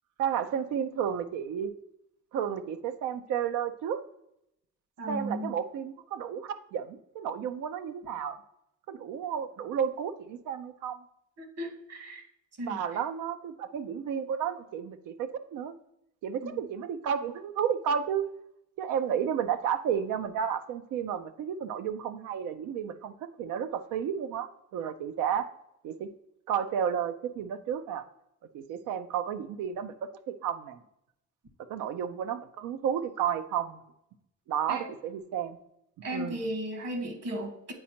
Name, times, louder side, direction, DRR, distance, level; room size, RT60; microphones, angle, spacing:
voice 1, 0.2-1.7 2.3-4.0 5.1-8.4 8.9-11.0 12.6-15.7 16.2-18.2 18.8-25.5 25.8-26.1 26.5-28.0 28.5-30.8 31.7-33.8 34.5-35.6 36.1-36.4, right 8 dB, 85° right, 9 dB, 0.5 m, -32 dB
voice 2, 5.0-5.5 11.4-12.2 12.6-12.8 16.4-16.6 34.7-34.9 36.0-37.7, right 1 dB, 60° right, 5 dB, 1.4 m, -35 dB
8.7 x 4.2 x 2.8 m, 0.82 s
cardioid pair, 90°, 30 cm